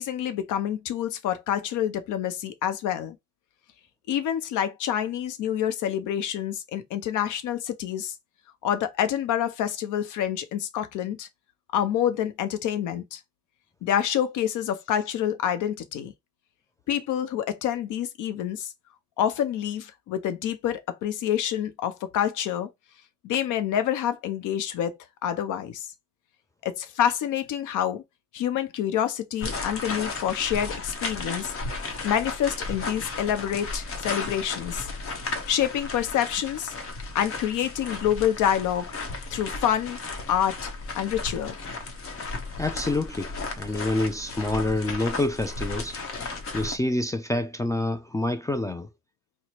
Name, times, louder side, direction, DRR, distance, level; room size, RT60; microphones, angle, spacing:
voice 1, 0.0-3.2 4.1-8.1 8.6-11.3 11.7-13.2 13.8-16.1 16.9-18.7 19.2-22.7 23.2-25.9 26.6-28.0 28.3-31.8 32.0-34.9 35.5-36.7 37.1-38.9 39.3-40.0 40.3-41.5, left 10 dB, 85° left, 0.7 m, -27 dB
sound 1, 29.4-46.8, left 3 dB, 45° left, 0.9 m, -34 dB
voice 2, 42.6-46.0 46.5-48.9, left 2 dB, 10° left, 0.3 m, -27 dB
3.0 x 2.1 x 4.2 m
cardioid pair, 90°, 30 cm